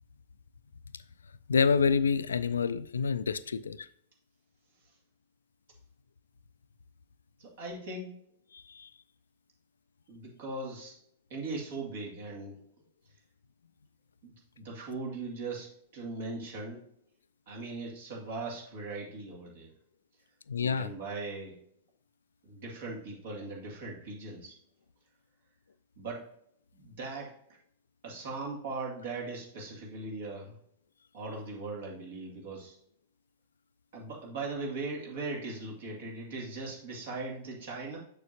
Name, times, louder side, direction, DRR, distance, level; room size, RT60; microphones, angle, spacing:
voice 1, 1.5-3.9 8.7-8.9 20.5-20.9, left 5 dB, 75° left, 15 dB, 0.3 m, -27 dB
voice 2, 7.4-8.1 10.1-11.0 11.3-12.6 14.2-16.8 17.5-19.7 20.6-21.6 22.4-24.6 26.0-26.3 26.7-27.6 28.0-30.5 31.1-32.8 33.9-38.0, right 3 dB, 55° right, -2 dB, 2.2 m, -39 dB
6.6 x 6.4 x 2.8 m, 0.68 s
figure-of-eight pair, 95°, 0 cm